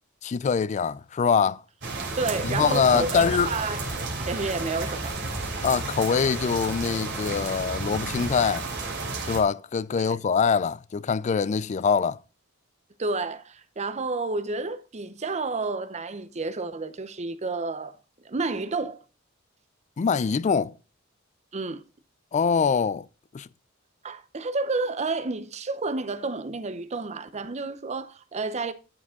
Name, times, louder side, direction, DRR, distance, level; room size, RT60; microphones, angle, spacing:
voice 1, 0.2-1.6 2.4-3.5 5.6-8.6 9.3-12.2 20.0-20.7 22.3-23.1 23.3-23.5, left 6 dB, 35° left, 0.3 m, -24 dB
sound 1, 1.8-9.4, right 3 dB, 60° right, 3.0 m, -32 dB
voice 2, 2.2-3.8 4.2-5.2 10.0-10.2 13.0-18.0 18.2-19.0 21.5-21.8 24.0-28.7, right 3 dB, 35° right, 0.6 m, -30 dB
12.5 x 4.9 x 3.7 m
head